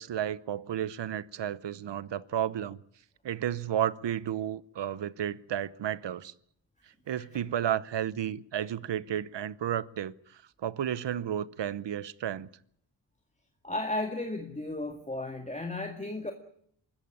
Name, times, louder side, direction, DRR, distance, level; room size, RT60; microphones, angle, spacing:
voice 1, 0.0-2.8 3.2-6.3 7.1-12.5, right 10 dB, 75° right, 0.9 m, -32 dB
voice 2, 13.6-16.3, left 2 dB, 15° left, 2.0 m, -34 dB
24.0 x 14.0 x 9.8 m
wide cardioid pair, 85°, 43 cm